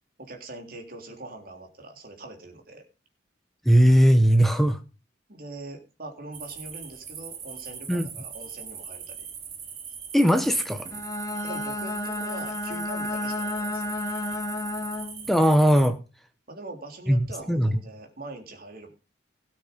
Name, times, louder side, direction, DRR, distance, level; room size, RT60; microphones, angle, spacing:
voice 1, 0.2-2.9 5.3-9.3 11.4-14.0 16.5-18.9, right 2 dB, 55° right, 4 dB, 3.5 m, -42 dB
voice 2, 3.6-4.8 7.9-8.1 10.1-10.9 15.3-16.0 17.1-17.8, equal, ahead, 7 dB, 1.1 m, -19 dB
sound 1, 6.3-15.9, right 7 dB, 35° right, 2.9 m, -40 dB
Bowed string instrument, 10.8-15.3, left 2 dB, 20° left, 1.4 m, -32 dB
18.0 x 6.2 x 5.3 m, 0.33 s
head